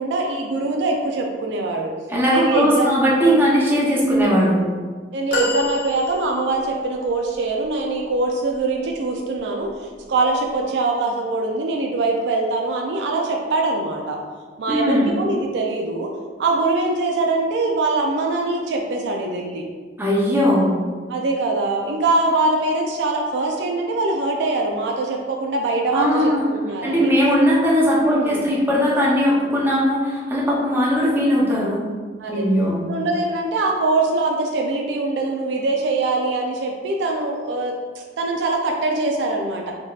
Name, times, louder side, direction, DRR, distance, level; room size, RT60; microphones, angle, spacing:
voice 1, 0.0-1.9 2.3-2.9 4.0-4.6 5.1-14.2 14.6-16.1 16.4-19.7 21.1-27.1 27.9-28.5 32.2-32.5 32.9-39.7, right 2 dB, 70° right, 1 dB, 0.4 m, -23 dB
voice 2, 2.1-4.6 14.7-15.1 20.0-20.7 25.9-26.4 26.8-31.8 32.3-32.8, equal, 10° right, -6 dB, 0.7 m, -19 dB
sound 1, 5.3-6.7 7.5-7.6, equal, 50° left, 0.6 m, -25 dB
3.6 x 2.7 x 2.3 m, 1.5 s
head